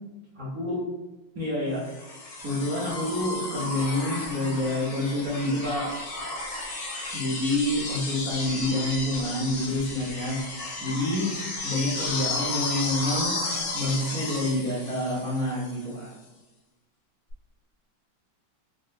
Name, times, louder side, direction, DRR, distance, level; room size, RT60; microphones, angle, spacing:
voice 1, 0.3-0.8 1.3-1.8 2.4-5.9 7.1-10.4 10.8-11.3 11.6-13.4 13.7-16.1, left 1 dB, 60° right, -6 dB, 0.9 m, -28 dB
sound 1, 1.8-15.9 17.3-17.4, left 2 dB, 70° left, 1.3 m, -33 dB
3.6 x 2.4 x 2.5 m, 1.1 s
omnidirectional pair, 2.2 m